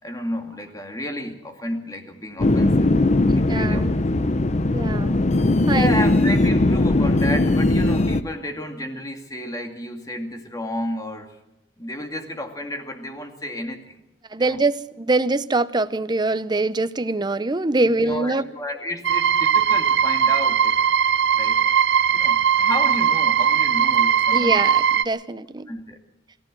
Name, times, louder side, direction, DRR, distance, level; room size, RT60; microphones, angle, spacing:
voice 1, 0.0-2.9 3.5-4.0 5.7-11.3 11.8-14.0 14.4-14.6 17.8-20.8 21.3-21.6 22.1-24.6 25.7-26.0, equal, 20° left, 2.4 m, -32 dB
sound 1, 2.4-8.2, left 2 dB, 40° left, 0.7 m, -19 dB
voice 2, 3.3-3.9 4.7-5.2 5.7-6.0 14.3-18.5 24.3-25.7, right 2 dB, 25° right, 0.7 m, -23 dB
sound 2, 19.0-25.0, right 8 dB, 65° right, 0.6 m, -19 dB
23.0 x 15.0 x 7.7 m
head